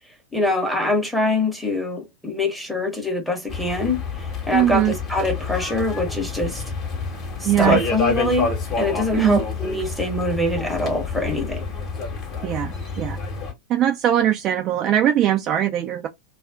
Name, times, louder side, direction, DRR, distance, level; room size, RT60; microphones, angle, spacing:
voice 1, 0.3-4.0 4.5-6.6 7.4-8.5 8.8-11.7, left 2 dB, ahead, 0.9 m, -24 dB
sound 1, 3.5-13.5, left 4 dB, 30° left, 1.0 m, -28 dB
voice 2, 4.5-4.9 7.4-7.8 9.1-9.4 12.4-13.2 13.7-16.1, right 11 dB, 35° right, 0.4 m, -20 dB
2.4 x 2.1 x 3.5 m
figure-of-eight pair, 90°, 0 cm